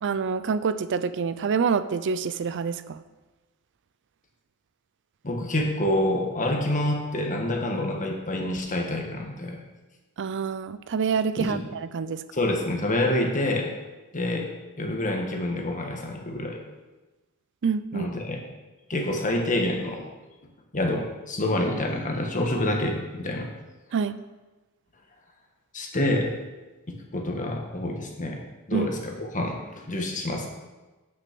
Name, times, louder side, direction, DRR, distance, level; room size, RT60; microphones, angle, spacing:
voice 1, 0.0-3.0 10.2-12.2 17.6-18.1 23.9-24.2 28.7-28.9, right 5 dB, 55° right, 13 dB, 0.4 m, -27 dB
voice 2, 5.2-9.6 11.4-11.6 12.3-13.7 14.1-14.5 14.8-16.6 17.9-18.4 18.9-20.1 20.7-23.5 25.7-26.3 26.9-30.5, left 1 dB, 35° left, 2 dB, 1.4 m, -27 dB
9.5 x 6.1 x 6.0 m, 1.2 s
head